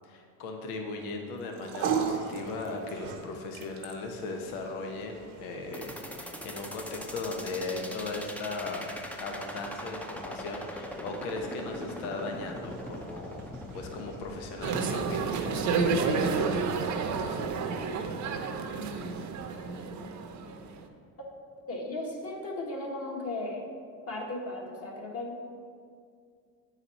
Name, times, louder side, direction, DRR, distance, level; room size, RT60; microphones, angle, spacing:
voice 1, 0.0-8.9 9.2-13.5 13.7-15.9, left 3 dB, 85° left, 2 dB, 0.9 m, -37 dB
sound 1, 1.3-17.8, right 6 dB, 80° right, 0.9 m, -41 dB
sound 2, 5.7-15.8, equal, 5° left, 0.5 m, -41 dB
sound 3, 14.6-20.8, right 4 dB, 45° right, 0.7 m, -30 dB
voice 2, 21.7-23.6 24.1-25.4, left 2 dB, 35° left, -1 dB, 1.5 m, -36 dB
8.3 x 4.1 x 4.1 m, 2.2 s
supercardioid pair, 90°, 42 cm